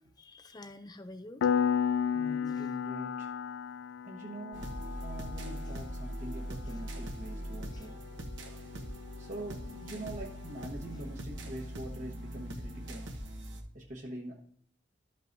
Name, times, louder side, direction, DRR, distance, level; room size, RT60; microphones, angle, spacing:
voice 1, 0.2-1.5 2.5-2.7 5.7-5.8 6.7-6.8 7.7-7.9, left 2 dB, 20° left, 10 dB, 0.5 m, -49 dB
Piano, 1.4-11.8, left 7 dB, 85° left, 0.3 m, -36 dB
voice 2, 2.1-3.3 4.0-4.7 5.0-8.0 9.2-13.1 13.7-14.4, right 1 dB, 40° right, -2 dB, 1.1 m, -44 dB
sound 1, 4.5-13.6, right 1 dB, 75° right, 1.2 m, -41 dB
13.0 x 5.5 x 2.6 m, 0.64 s
head